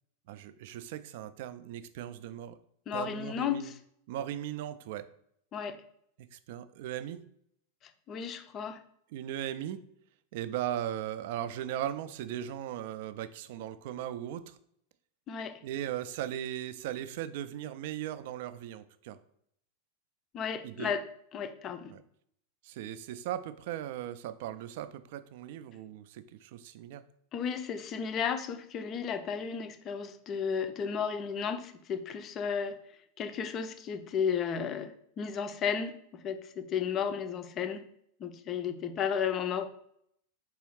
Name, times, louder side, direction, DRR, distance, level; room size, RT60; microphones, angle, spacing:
voice 1, 0.3-2.6 2.9-3.7 4.1-5.1 6.3-7.2 9.1-9.8 10.3-14.6 15.6-19.2 20.6-21.0 21.9-22.0 22.6-27.0, right 11 dB, 50° right, 13 dB, 0.3 m, -38 dB
voice 2, 2.9-3.8 5.5-5.8 8.1-8.8 15.3-15.6 20.3-21.0 21.3-21.9 27.3-32.8 33.2-37.9 38.2-39.7, left 7 dB, 30° left, 8 dB, 0.4 m, -33 dB
4.8 x 3.0 x 3.1 m, 0.70 s
figure-of-eight pair, 90°, 0 cm